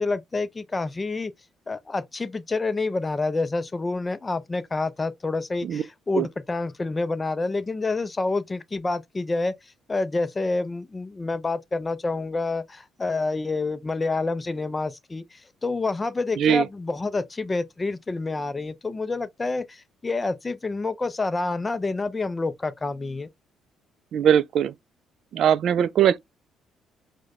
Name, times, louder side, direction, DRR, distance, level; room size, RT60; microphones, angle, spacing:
voice 1, 0.0-1.3 1.7-9.5 9.9-23.3, left 3 dB, 20° left, 0.4 m, -28 dB
voice 2, 24.1-24.7 25.3-26.2, right 9 dB, 65° right, 0.3 m, -20 dB
4.9 x 2.2 x 2.4 m
cardioid pair, 105°, 0 cm